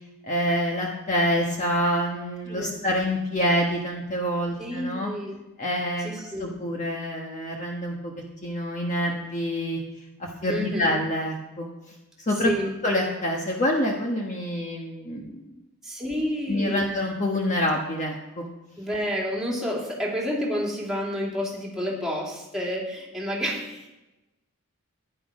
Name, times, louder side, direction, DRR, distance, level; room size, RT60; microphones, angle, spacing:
voice 1, 0.2-5.1 5.6-6.1 6.4-9.8 10.2-11.7 12.3-12.5 12.8-15.4 16.5-18.5, equal, 35° left, 0 dB, 1.4 m, -26 dB
voice 2, 2.4-2.8 4.6-5.4 6.0-6.5 10.5-11.0 12.4-12.7 15.8-16.8 18.8-23.9, equal, ahead, -4 dB, 3.3 m, -29 dB
13.5 x 10.5 x 5.3 m, 1.0 s
head